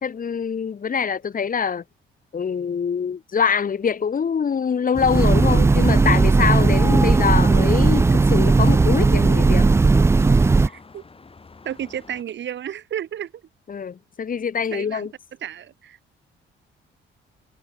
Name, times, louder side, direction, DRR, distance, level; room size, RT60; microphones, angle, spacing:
voice 1, 0.0-1.8 2.3-9.7 13.7-15.1, left 6 dB, 45° left, 2.7 m, -24 dB
Train, 5.0-10.7, right 3 dB, 15° right, 0.3 m, -16 dB
sound 1, 6.3-12.2, left 4 dB, 30° left, 6.3 m, -47 dB
voice 2, 10.6-11.0 11.6-13.3 14.7-15.1 15.4-16.0, right 10 dB, 65° right, 7.4 m, -32 dB
cardioid pair, 90°, 20 cm